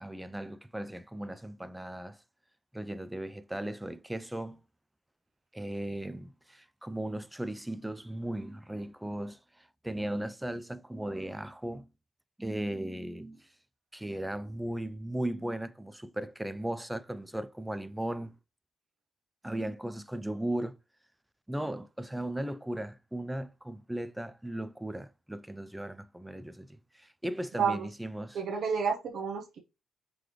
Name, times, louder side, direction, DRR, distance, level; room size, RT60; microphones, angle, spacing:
voice 1, 0.0-2.2 2.7-4.6 5.5-11.9 12.4-13.5 13.9-18.4 19.4-20.8 21.5-28.4, right 1 dB, 5° right, 0.3 m, -37 dB
voice 2, 28.3-29.6, right 6 dB, 65° right, 0.7 m, -30 dB
3.8 x 3.2 x 3.1 m
cardioid pair, 90°, 0 cm